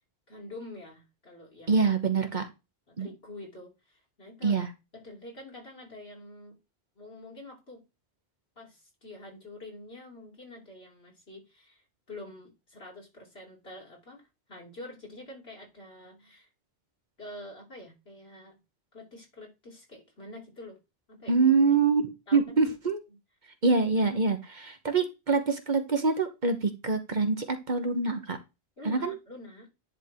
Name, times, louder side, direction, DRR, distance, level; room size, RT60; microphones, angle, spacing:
voice 1, 0.3-2.1 2.9-4.6 4.9-6.6 7.0-7.8 8.6-11.8 12.1-16.5 17.2-18.6 18.9-20.8 21.1-21.4 22.3-22.7 28.8-29.7, left 2 dB, 70° left, 3.5 m, -47 dB
voice 2, 1.7-2.5 3.0-3.1 4.4-4.7 21.3-23.0 23.6-28.4 28.9-29.1, right 4 dB, 45° right, 1.2 m, -25 dB
10.0 x 3.6 x 4.6 m
omnidirectional pair, 1.1 m